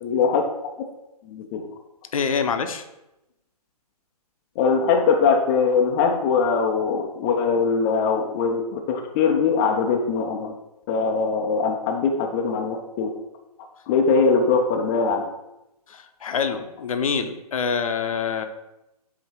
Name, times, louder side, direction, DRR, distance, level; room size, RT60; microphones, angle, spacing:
voice 1, 0.0-0.4 1.2-1.7 4.6-10.5 10.9-13.1 13.9-15.3, left 5 dB, 20° left, 2 dB, 0.4 m, -21 dB
voice 2, 2.1-2.8 15.9-18.4, left 6 dB, 60° left, 8 dB, 0.7 m, -26 dB
8.2 x 2.8 x 4.4 m, 0.92 s
figure-of-eight pair, 140°, 20 cm